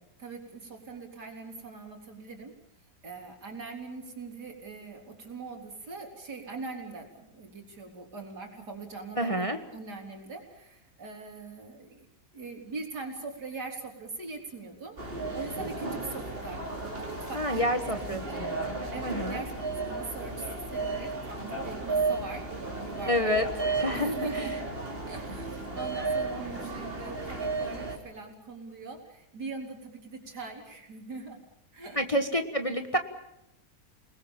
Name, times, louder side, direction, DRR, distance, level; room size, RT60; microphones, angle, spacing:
voice 1, 0.2-2.5 3.0-12.1 12.3-15.0 15.3-17.7 18.0-18.4 18.9-23.3 23.9-31.4 31.7-32.0, right 4 dB, 80° right, 2 dB, 4.4 m, -41 dB
voice 2, 9.2-9.6 17.3-18.7 19.0-19.4 23.1-24.5 32.0-33.0, equal, 20° left, 6 dB, 1.4 m, -29 dB
sound 1, 15.0-28.0, right 3 dB, 35° right, 3.8 m, -34 dB
29.5 x 20.0 x 7.2 m, 0.85 s
omnidirectional pair, 1.7 m